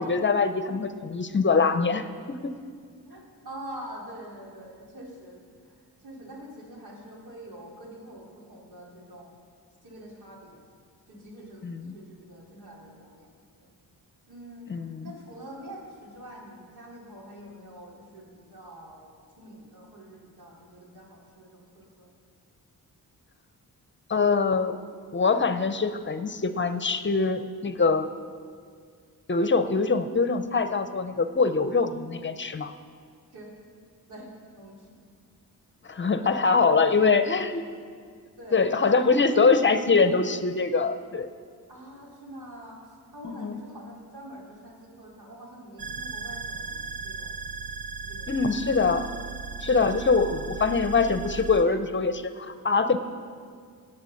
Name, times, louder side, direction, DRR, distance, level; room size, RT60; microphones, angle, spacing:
voice 1, 0.0-2.5 11.6-12.0 14.7-15.1 24.1-24.8 25.1-28.1 29.3-32.7 35.8-37.6 38.5-41.3 43.2-43.6 48.3-49.1 49.6-53.0, left 4 dB, 30° left, 10 dB, 0.6 m, -24 dB
voice 2, 3.0-5.7 6.0-9.3 9.8-10.6 11.1-13.7 14.3-22.1 33.3-33.5 34.0-34.3 34.6-35.0 36.2-37.0 38.4-40.2 41.7-47.3 48.0-48.4, right 1 dB, 85° right, -3 dB, 3.7 m, -45 dB
sound 1, 45.8-51.6, right 5 dB, 65° right, 0.8 m, -37 dB
17.5 x 8.7 x 6.5 m, 2.1 s
wide cardioid pair, 110°, 37 cm